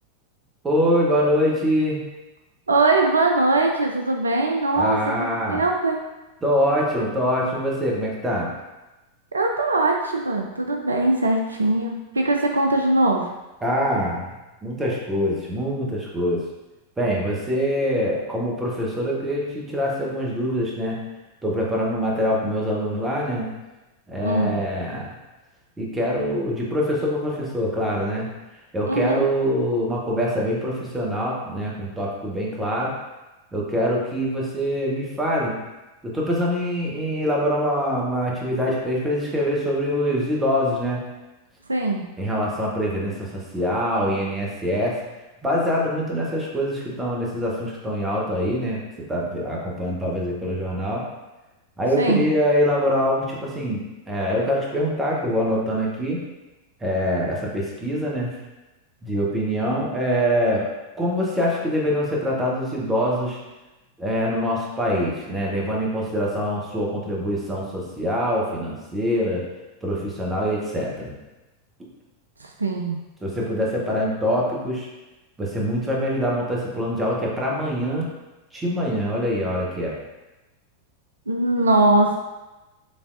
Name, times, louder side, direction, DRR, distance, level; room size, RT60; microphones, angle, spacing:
voice 1, 0.6-2.0 4.8-5.6 6.4-8.5 13.6-14.3 14.6-16.4 17.0-21.0 21.4-23.5 24.1-25.1 25.8-28.3 28.7-32.9 33.5-35.6 36.0-41.0 42.2-45.0 45.4-51.0 51.8-56.2 56.8-58.4 59.0-60.7 61.0-63.4 64.0-69.4 69.8-71.1 73.2-74.9 75.4-78.1 78.5-80.0, equal, 15° right, -3 dB, 1.1 m, -24 dB
voice 2, 2.7-6.0 9.3-13.3 24.2-24.6 28.9-29.3 41.7-42.0 52.0-52.3 72.4-73.0 81.3-82.2, right 2 dB, 75° right, 2 dB, 0.4 m, -21 dB
5.2 x 3.4 x 2.6 m, 1.1 s
figure-of-eight pair, 90°, 0 cm